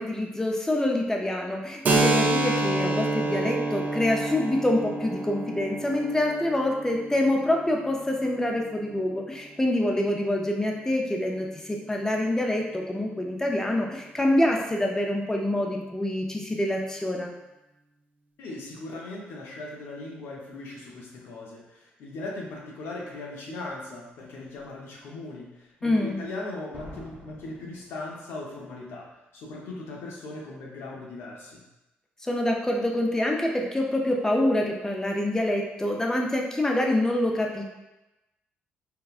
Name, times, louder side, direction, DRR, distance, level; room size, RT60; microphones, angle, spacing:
voice 1, 0.0-17.3 25.8-26.2 32.2-37.6, left 1 dB, 15° left, 1 dB, 0.5 m, -26 dB
Keyboard (musical), 1.8-9.2, right 2 dB, 45° right, 0.4 m, -28 dB
voice 2, 18.4-29.1 29.3-31.6, left 2 dB, 80° left, -3 dB, 0.6 m, -39 dB
Slam, 24.3-24.7 26.7-28.6 28.9-29.0, left 1 dB, 45° left, 0.8 m, -47 dB
3.5 x 2.2 x 2.4 m, 0.98 s
cardioid pair, 85°, 4 cm